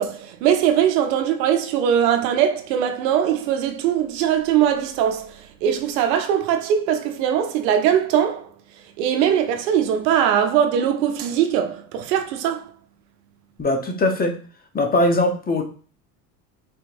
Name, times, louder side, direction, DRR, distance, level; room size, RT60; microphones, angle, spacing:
voice 1, 0.0-8.5 9.0-12.7, right 9 dB, 85° right, 0.8 m, -21 dB
voice 2, 13.6-14.4 14.7-15.6, left 2 dB, 20° left, 0.8 m, -20 dB
4.4 x 2.8 x 2.6 m
supercardioid pair, 95°, 48 cm